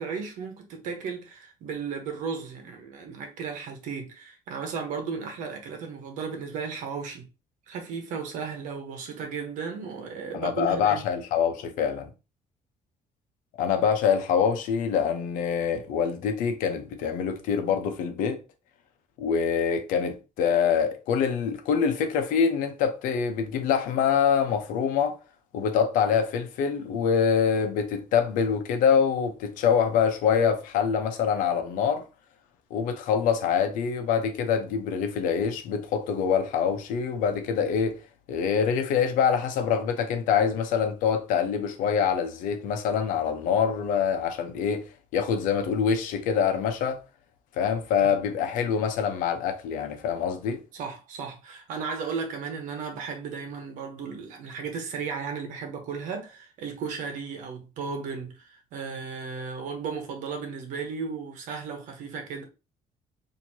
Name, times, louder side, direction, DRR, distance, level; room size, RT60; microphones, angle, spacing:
voice 1, 0.0-7.3 7.7-11.0 48.0-48.1 50.7-62.4, right 5 dB, 70° right, 1.1 m, -35 dB
voice 2, 10.3-12.1 13.6-18.4 19.2-25.1 25.5-32.0 32.7-38.0 38.3-44.8 45.1-47.0 47.6-50.6, left 7 dB, 85° left, 0.8 m, -25 dB
4.5 x 2.8 x 2.8 m
cardioid pair, 175°, 13 cm